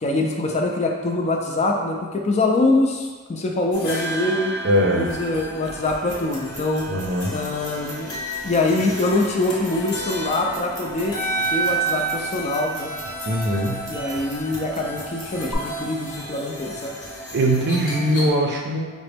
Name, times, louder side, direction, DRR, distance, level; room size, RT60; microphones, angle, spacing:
voice 1, 0.0-4.6 5.0-6.9 7.3-8.2 8.4-11.2 11.5-12.9 13.9-16.9, left 2 dB, 30° left, 1 dB, 0.3 m, -24 dB
sound 1, 3.7-18.3, right 2 dB, 85° left, 1.0 m, -31 dB
voice 2, 4.6-5.1 6.9-7.4 13.3-14.2 17.3-18.9, right 1 dB, 50° right, 0 dB, 0.5 m, -22 dB
sound 2, 6.1-15.5, right 1 dB, 15° right, 0.8 m, -42 dB
4.9 x 2.1 x 3.3 m, 1.5 s
head